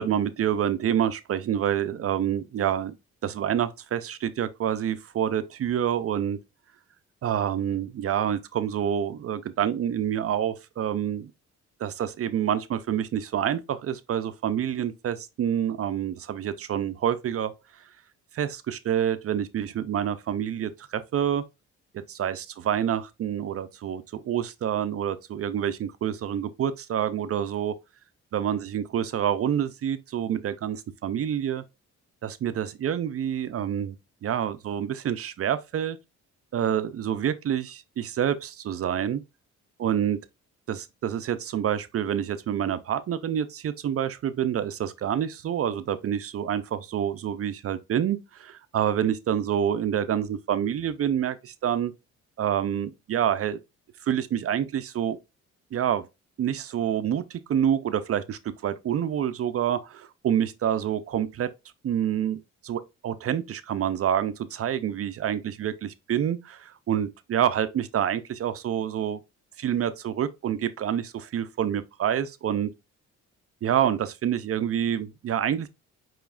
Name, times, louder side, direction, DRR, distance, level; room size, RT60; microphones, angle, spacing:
voice 1, 0.0-2.9 3.2-6.4 7.2-11.3 11.8-17.5 18.3-21.4 21.9-27.7 28.3-31.6 32.2-34.0 34.2-36.0 36.5-39.2 39.8-40.2 40.7-51.9 52.4-53.6 54.1-55.2 55.7-56.0 56.4-61.5 61.8-62.4 62.6-69.2 69.6-72.7 73.6-75.7, right 9 dB, 50° right, 0.5 m, -27 dB
6.9 x 3.1 x 2.5 m
cardioid pair, 90°, 30 cm